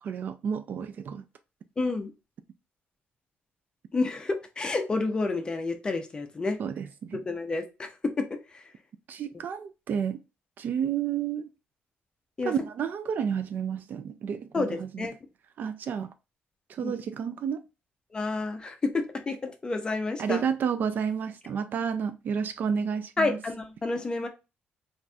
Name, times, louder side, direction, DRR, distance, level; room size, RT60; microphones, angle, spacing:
voice 1, 0.0-1.2 6.6-7.2 9.1-10.2 10.6-11.5 12.4-15.1 15.6-16.1 16.7-17.6 20.2-23.4, right 7 dB, 50° right, 0.3 m, -31 dB
voice 2, 1.8-2.1 3.9-6.6 7.3-7.9 8.2-8.3 12.4-12.5 14.5-15.1 16.8-16.9 18.1-20.4 23.2-24.3, left 3 dB, 20° left, 0.5 m, -29 dB
4.0 x 2.5 x 2.3 m
cardioid pair, 165°, 4 cm